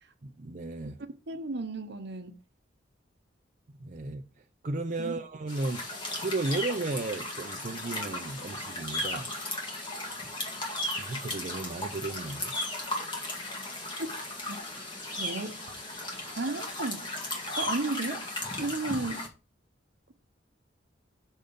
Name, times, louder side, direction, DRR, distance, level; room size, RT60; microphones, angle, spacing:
voice 1, 0.2-1.0 3.7-4.3 4.6-5.8 6.2-9.3 11.0-12.6 19.0-19.1, right 2 dB, 45° right, 0.6 m, -34 dB
voice 2, 1.3-2.3 5.0-5.2 14.0-14.1 14.5-14.6 15.2-15.6 16.4-17.1 17.6-18.3 18.6-19.3, right 2 dB, 65° right, 1.0 m, -33 dB
sound 1, 5.5-19.3, left 1 dB, 25° left, 1.9 m, -36 dB
6.4 x 4.2 x 5.2 m
head